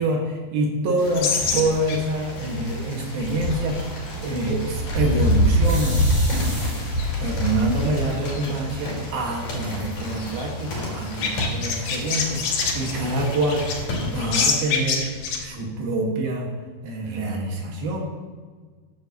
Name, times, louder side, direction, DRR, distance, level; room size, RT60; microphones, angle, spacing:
voice 1, 0.0-6.0 7.2-15.1 15.4-16.5 16.8-18.0, right 1 dB, 80° right, -1 dB, 3.7 m, -26 dB
sound 1, 1.0-14.3, equal, 60° left, 5.4 m, -27 dB
sound 2, 1.1-15.4, left 4 dB, 85° left, 3.5 m, -30 dB
sound 3, 5.6-7.2 8.0-8.1 8.5-8.6 8.8-9.4, right 1 dB, 30° right, 3.9 m, -36 dB
15.5 x 10.0 x 3.0 m, 1.4 s
omnidirectional pair, 4.2 m